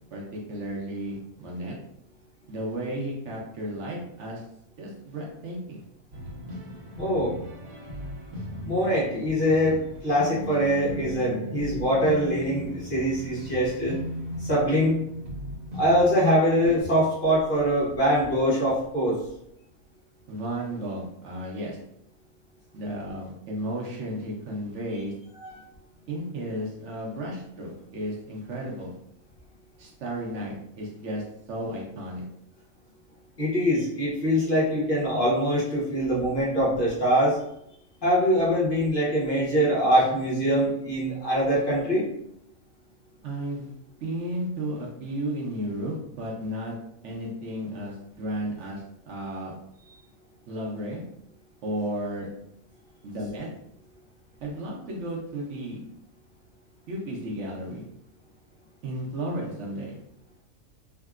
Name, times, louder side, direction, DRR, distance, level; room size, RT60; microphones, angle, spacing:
voice 1, 0.1-1.8 2.5-4.4 4.8-5.8 20.3-21.8 22.7-25.1 26.1-29.0 29.8-32.2 43.2-43.8 44.0-46.7 47.0-49.5 50.5-51.0 51.6-52.3 53.0-53.5 54.4-55.8 56.9-57.8 58.8-60.0, right 1 dB, 60° right, -2 dB, 0.9 m, -33 dB
sound 1, 6.1-16.8, equal, 75° right, 1.3 m, -37 dB
voice 2, 7.0-7.3 8.6-9.8 10.0-13.9 14.4-15.0 15.7-19.2 25.4-25.6 33.4-37.4 38.0-42.1, equal, 40° left, -7 dB, 1.1 m, -23 dB
3.5 x 2.2 x 2.3 m, 0.75 s
omnidirectional pair, 1.5 m